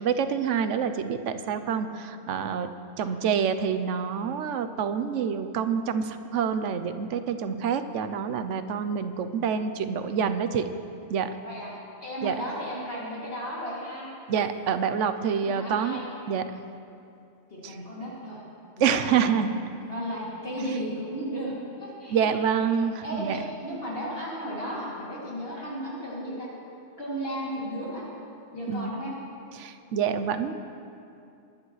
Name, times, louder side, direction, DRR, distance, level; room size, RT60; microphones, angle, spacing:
voice 1, 0.0-2.7 3.0-10.7 11.1-11.3 12.2-12.3 14.3-16.0 16.3-16.4 17.6-17.7 18.8-19.6 22.1-23.4 28.7-28.9 29.6-30.5, right 7 dB, 80° right, 10 dB, 1.0 m, -27 dB
voice 2, 12.0-14.1 15.3-16.1 17.5-18.4 18.8-19.5 19.8-21.5 21.8-22.4 23.0-26.5 27.0-28.1 28.5-29.1, equal, 50° left, -7 dB, 2.9 m, -34 dB
23.0 x 11.0 x 3.2 m, 2.6 s
omnidirectional pair, 1.3 m